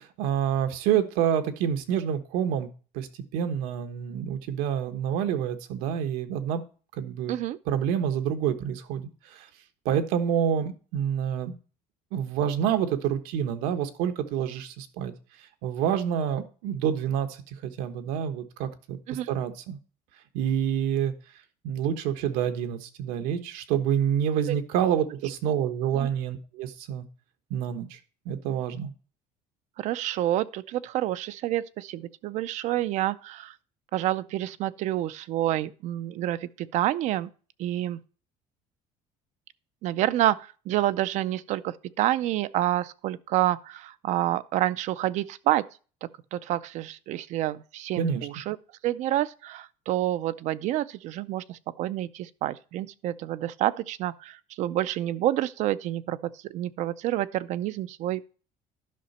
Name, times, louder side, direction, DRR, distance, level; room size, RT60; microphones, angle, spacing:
voice 1, 0.0-2.7 2.9-6.6 7.0-7.3 7.7-9.5 9.8-11.5 12.1-15.1 15.6-19.0 19.3-19.8 20.3-21.1 21.6-27.0 27.5-28.0 28.2-28.9 48.0-48.3, right 9 dB, 85° right, 1.3 m, -27 dB
voice 2, 29.8-33.5 33.9-37.3 37.6-38.0 39.8-45.6 46.3-48.6 48.8-58.2, right 14 dB, 55° right, 0.5 m, -28 dB
11.5 x 5.9 x 4.2 m
cardioid pair, 150°, 15 cm